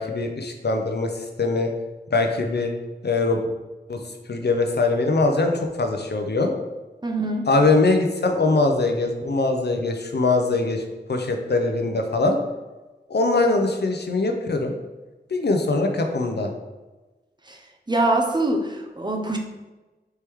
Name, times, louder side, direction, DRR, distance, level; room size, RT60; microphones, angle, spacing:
voice 1, 0.0-1.7 2.1-2.7 3.0-3.5 3.9-4.0 4.3-6.5 7.5-10.8 11.1-12.4 13.1-14.7 15.3-16.5, left 3 dB, 70° left, 4 dB, 0.5 m, -22 dB
voice 2, 7.0-7.5 17.5-17.6 17.9-19.4, right 2 dB, 25° right, 1 dB, 0.7 m, -23 dB
4.5 x 3.1 x 3.5 m, 1.2 s
wide cardioid pair, 50°, 18 cm